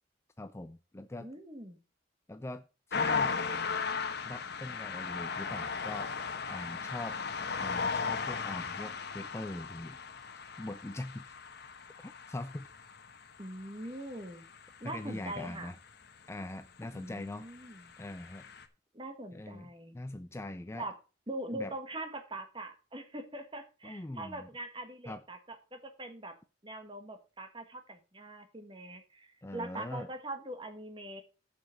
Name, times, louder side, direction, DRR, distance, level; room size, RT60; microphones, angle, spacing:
voice 1, 0.4-1.3 2.3-3.4 4.2-6.1 6.5-7.2 7.6-10.0 10.6-11.4 12.0-12.7 14.8-15.8 16.3-17.5 18.0-18.5 19.3-19.7 19.9-20.9 21.5-21.7 23.8-24.5 25.1-25.2 29.4-30.1, left 1 dB, 15° left, 10 dB, 0.4 m, -42 dB
voice 2, 1.2-1.8 13.4-14.4 14.8-15.7 16.9-17.9 18.9-20.0 20.7-21.0 21.3-26.3 26.6-31.2, right 1 dB, 25° right, 7 dB, 1.6 m, -42 dB
sound 1, 2.9-16.1 17.1-18.7, left 5 dB, 60° left, 1.1 m, -37 dB
7.3 x 6.9 x 6.5 m, 0.33 s
head